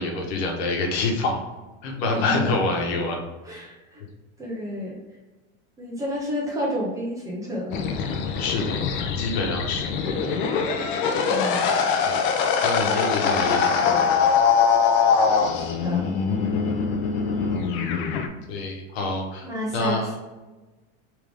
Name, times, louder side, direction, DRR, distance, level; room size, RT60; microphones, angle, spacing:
voice 1, 0.0-1.4 1.8-3.2 8.4-8.8 9.2-9.9 12.0-12.3 12.6-14.3 18.5-19.5 19.7-20.1, left 3 dB, 75° left, 2 dB, 1.2 m, -26 dB
voice 2, 2.1-2.6 3.4-4.0 4.4-4.9 5.8-8.0 11.3-11.7 15.5-16.1 19.4-20.2, equal, 10° right, -5 dB, 0.4 m, -30 dB
sound 1, 7.7-18.3, left 6 dB, 55° left, 0.5 m, -23 dB
3.5 x 3.4 x 3.4 m, 1.2 s
supercardioid pair, 180°, 32 cm